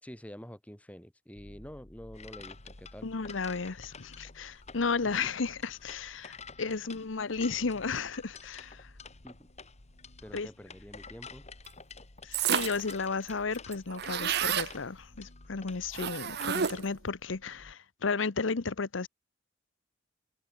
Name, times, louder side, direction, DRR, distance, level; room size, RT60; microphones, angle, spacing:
voice 1, 0.0-3.1 5.2-5.3 9.2-9.5 10.2-11.5, equal, 5° left, 2.5 m, -47 dB
sound 1, 1.4-17.7, left 1 dB, 70° left, 2.3 m, -56 dB
sound 2, 2.1-16.8, left 5 dB, 35° left, 6.9 m, -50 dB
voice 2, 3.0-8.9 10.3-10.5 12.2-19.1, left 4 dB, 85° left, 0.9 m, -33 dB
sound 3, 12.3-12.9 13.3-13.4 13.6-14.7 15.9-17.0, right 9 dB, 60° right, 0.7 m, -30 dB
head